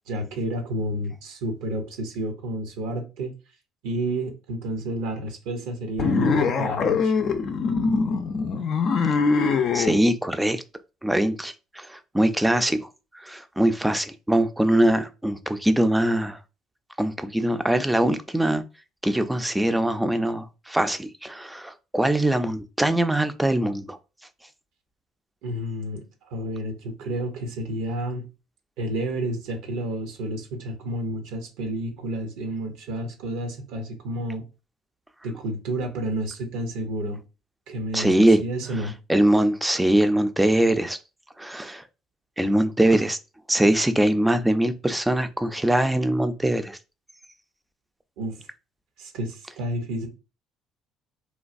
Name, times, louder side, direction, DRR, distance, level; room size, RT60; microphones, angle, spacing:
voice 1, 0.1-3.3 3.8-7.1 25.4-28.3 28.8-34.4 35.2-37.2 37.7-38.9 48.2-48.5 49.0-50.1, right 1 dB, 75° right, 0.7 m, -30 dB
sound 1, 6.0-10.0, left 5 dB, 55° left, 0.4 m, -23 dB
voice 2, 9.7-10.6 11.0-12.9 13.1-16.4 17.0-18.6 19.0-24.0 37.9-38.4 39.1-41.0 41.4-41.8 42.4-43.2 43.5-46.8, right 1 dB, 10° right, 0.4 m, -22 dB
3.0 x 2.2 x 2.5 m
hypercardioid pair, 65°, 0 cm